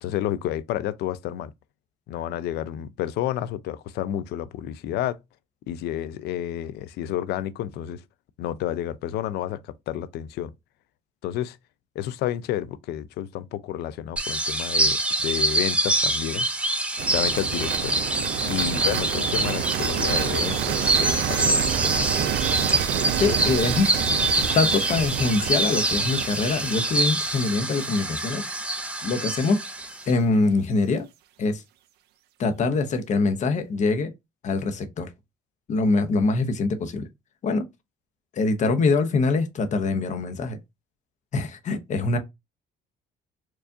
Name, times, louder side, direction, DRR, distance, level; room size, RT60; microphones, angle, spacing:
voice 1, 0.0-1.5 2.1-5.2 5.7-8.0 8.4-10.5 11.2-11.6 12.0-16.5 17.1-18.0 18.5-22.4, left 12 dB, 75° left, 0.4 m, -30 dB
sound 1, 14.2-30.1, right 1 dB, 5° right, 0.6 m, -25 dB
sound 2, 17.0-28.9, right 11 dB, 75° right, 0.4 m, -29 dB
sound 3, 20.0-28.0, right 4 dB, 55° right, 1.5 m, -47 dB
voice 2, 23.2-23.9 24.5-28.4 29.0-29.6 30.1-31.1 31.4-31.6 32.4-34.1 34.4-35.1 35.7-37.1 37.4-37.7 38.3-40.6 41.3-42.2, left 3 dB, 45° left, 0.8 m, -24 dB
4.5 x 2.4 x 2.6 m
cardioid pair, 110°, 17 cm